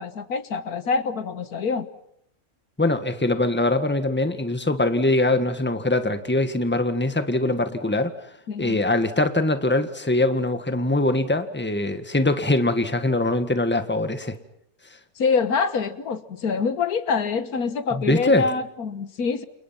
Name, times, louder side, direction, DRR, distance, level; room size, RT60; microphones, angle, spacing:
voice 1, 0.0-1.9 8.5-8.8 15.2-19.5, left 5 dB, 80° left, 12 dB, 1.8 m, -25 dB
voice 2, 2.8-8.1 8.6-14.4 17.9-18.5, left 2 dB, 5° left, 9 dB, 1.6 m, -22 dB
29.0 x 29.0 x 5.9 m, 0.74 s
omnidirectional pair, 1.6 m